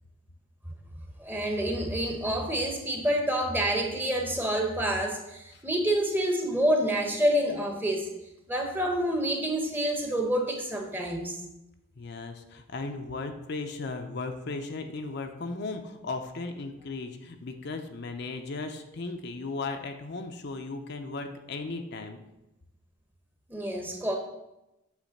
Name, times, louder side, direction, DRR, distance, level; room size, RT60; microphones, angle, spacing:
voice 1, 1.2-8.1 8.5-11.4 23.5-24.1, right 1 dB, 10° right, 2 dB, 0.9 m, -28 dB
voice 2, 12.0-22.2, left 3 dB, 50° left, 5 dB, 0.6 m, -36 dB
8.3 x 3.3 x 6.5 m, 0.93 s
head